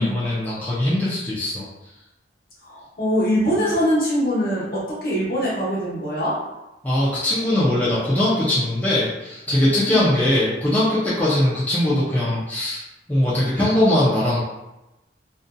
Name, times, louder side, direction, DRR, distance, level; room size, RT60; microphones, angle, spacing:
voice 1, 0.0-1.7 6.8-12.8 13.1-14.4, left 1 dB, 10° left, -10 dB, 0.5 m, -21 dB
voice 2, 2.6-6.4 9.9-10.1, equal, 50° left, -8 dB, 1.1 m, -23 dB
2.6 x 2.6 x 2.2 m, 0.97 s
head